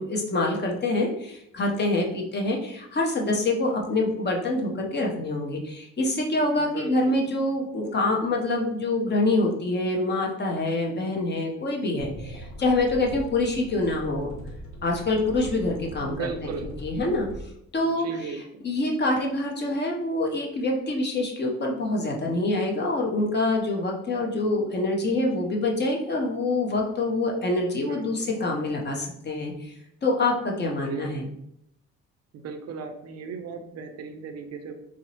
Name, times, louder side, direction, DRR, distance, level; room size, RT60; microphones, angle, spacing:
voice 1, 0.0-14.3 14.8-16.5 16.8-17.3 17.7-18.1 18.6-29.7 30.0-31.3, left 2 dB, 35° left, 0 dB, 0.8 m, -26 dB
voice 2, 6.6-7.2 16.0-16.7 17.8-18.6 27.6-28.4 30.7-31.1 32.3-34.7, right 5 dB, 55° right, 6 dB, 0.5 m, -37 dB
sound 1, 12.0-17.4, right 1 dB, 70° left, 1.0 m, -40 dB
4.2 x 2.0 x 2.8 m, 0.76 s
cardioid pair, 90°, 30 cm